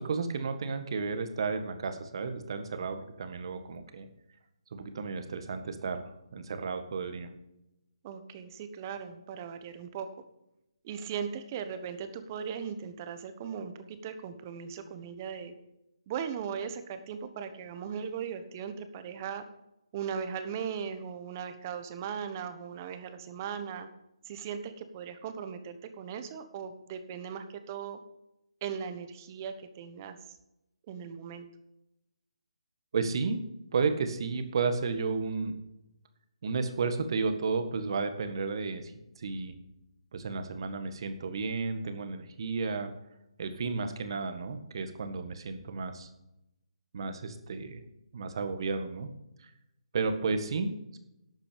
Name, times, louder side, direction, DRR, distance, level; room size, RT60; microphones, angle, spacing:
voice 1, 0.0-4.1 4.7-7.3 32.9-33.4 33.7-35.5 36.4-38.9 39.2-39.5 40.1-42.9 43.4-46.1 46.9-47.8 48.1-49.1 49.9-51.0, right 4 dB, 50° right, 8 dB, 1.7 m, -32 dB
voice 2, 8.0-10.1 10.8-15.5 16.1-19.4 19.9-23.9 24.2-28.0 28.6-30.4 30.9-31.5, right 7 dB, 30° right, 9 dB, 1.2 m, -38 dB
12.0 x 8.2 x 5.2 m, 0.87 s
figure-of-eight pair, 155°, 3 cm